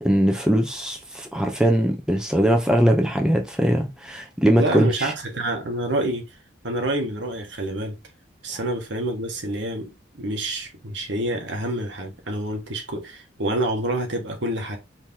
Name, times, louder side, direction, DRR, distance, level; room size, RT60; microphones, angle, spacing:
voice 1, 0.0-5.1, equal, 5° right, 0.7 m, -21 dB
voice 2, 4.5-6.4 6.6-8.0 8.4-14.8, right 1 dB, 85° right, 1.5 m, -27 dB
4.6 x 2.9 x 3.6 m
head